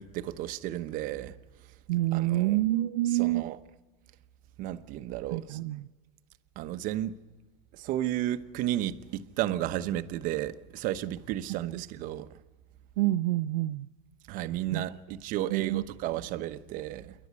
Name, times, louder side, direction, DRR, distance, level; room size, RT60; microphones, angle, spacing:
voice 1, 0.0-1.3 2.1-2.6 3.0-3.6 4.6-5.6 6.6-7.1 7.7-12.3 14.3-17.1, right 13 dB, 50° right, 1.0 m, -33 dB
voice 2, 1.9-3.5 5.3-5.8 13.0-13.9 14.7-14.8 15.5-15.8, right 16 dB, 75° right, 0.6 m, -27 dB
28.5 x 11.5 x 9.6 m
supercardioid pair, 115°, 18 cm